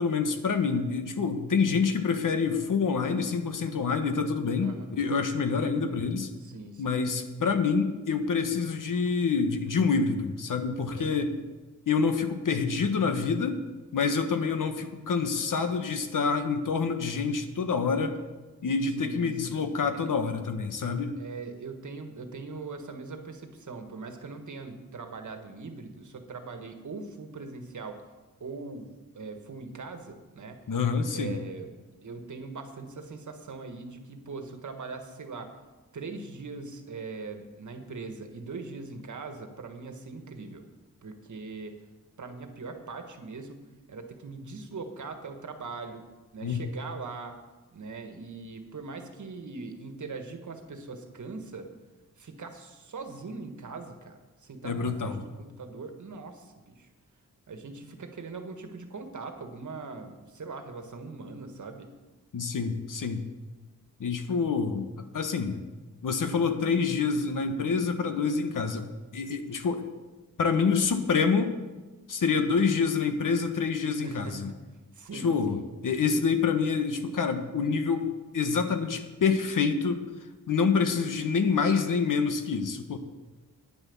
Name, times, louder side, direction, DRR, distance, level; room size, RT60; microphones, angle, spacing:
voice 1, 0.0-6.3 6.8-11.3 11.9-13.6 13.9-18.2 18.6-21.2 30.7-31.4 46.4-46.7 54.6-55.2 62.3-63.2 64.0-65.6 66.0-69.8 70.4-71.5 72.1-74.5 75.1-78.1 78.3-80.0 80.5-83.0, left 5 dB, 70° left, 7 dB, 1.3 m, -27 dB
voice 2, 4.6-5.0 6.3-7.0 10.9-11.2 18.9-19.6 21.2-28.0 28.4-30.6 31.1-35.5 35.9-40.6 41.0-41.7 42.2-46.0 46.3-47.4 47.7-51.7 52.2-56.9 57.5-61.9 74.0-74.6 74.9-75.6, right 4 dB, 60° right, 6 dB, 1.6 m, -41 dB
10.0 x 9.9 x 7.1 m, 1.2 s
wide cardioid pair, 115°, 33 cm